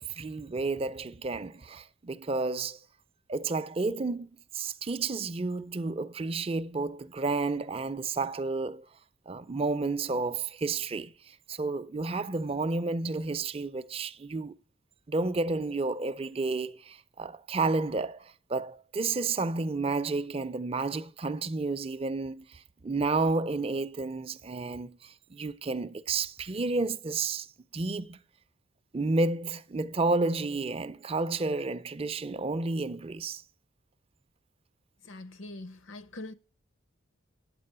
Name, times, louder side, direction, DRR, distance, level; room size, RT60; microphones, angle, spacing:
voice 1, 0.0-2.8 3.3-8.9 9.3-14.5 15.1-27.5 27.7-28.2 28.9-33.4, right 3 dB, 25° right, 0.4 m, -31 dB
voice 2, 35.0-36.3, left 2 dB, 65° left, 0.8 m, -43 dB
9.2 x 7.6 x 6.7 m
head